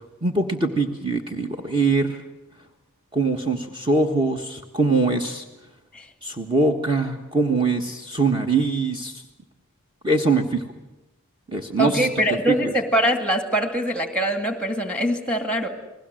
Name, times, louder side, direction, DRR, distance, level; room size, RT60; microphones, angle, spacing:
voice 1, 0.2-2.2 3.1-5.4 6.2-9.2 10.0-10.6 11.5-12.1 12.6-12.7, right 3 dB, 20° right, 3 dB, 1.4 m, -22 dB
voice 2, 11.8-15.7, equal, 5° left, 7 dB, 2.3 m, -23 dB
29.5 x 20.0 x 7.8 m, 0.96 s
head